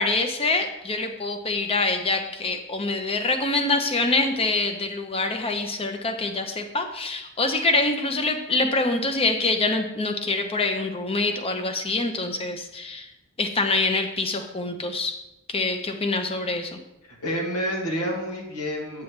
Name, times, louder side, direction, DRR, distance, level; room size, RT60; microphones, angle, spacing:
voice 1, 0.0-13.1 13.4-15.2 15.5-16.8, left 3 dB, 25° left, 5 dB, 0.8 m, -25 dB
voice 2, 17.1-19.0, equal, 90° left, -1 dB, 2.3 m, -29 dB
8.2 x 7.6 x 3.3 m, 0.87 s
head